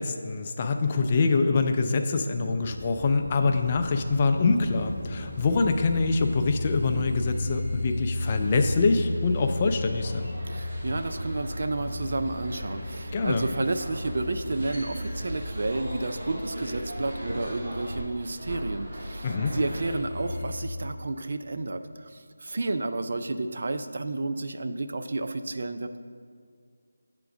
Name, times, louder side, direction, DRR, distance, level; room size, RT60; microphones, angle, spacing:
voice 1, 0.0-10.3 13.1-13.4 19.2-19.5, left 4 dB, 25° left, 5 dB, 0.4 m, -25 dB
sound 1, 2.6-20.6, left 1 dB, 10° right, 1.9 m, -35 dB
sound 2, 8.1-20.0, equal, 35° right, 1.2 m, -38 dB
voice 2, 10.5-26.0, right 2 dB, 55° right, 9 dB, 0.4 m, -31 dB
7.8 x 3.7 x 6.0 m, 2.1 s
figure-of-eight pair, 170°, 0 cm